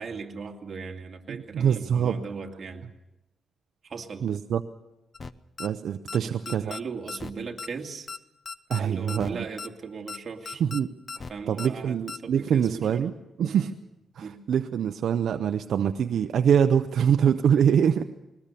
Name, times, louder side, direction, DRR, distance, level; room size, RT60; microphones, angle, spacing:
voice 1, 0.0-2.8 3.8-4.2 6.1-8.1 8.8-10.6 11.3-13.1 13.4-13.7 14.2-14.4, right 5 dB, 40° right, 2 dB, 2.3 m, -38 dB
voice 2, 1.3-2.2 4.2-4.6 5.6-6.7 8.7-9.5 10.6-10.9 11.5-13.7 14.1-18.0, right 8 dB, 70° right, 9 dB, 0.7 m, -24 dB
sound 1, 5.1-5.3 5.6-5.7 6.1-6.2 6.5-6.8 7.1-7.3 7.6-7.7 8.1-8.2 8.5-8.8 9.1-9.3 9.6-9.7 10.1-10.2 10.5-10.8 11.1-11.3 11.6-11.7 12.1-12.2, left 4 dB, 35° left, 0.7 m, -37 dB
21.0 x 19.5 x 6.9 m, 0.97 s
cardioid pair, 110°, 0 cm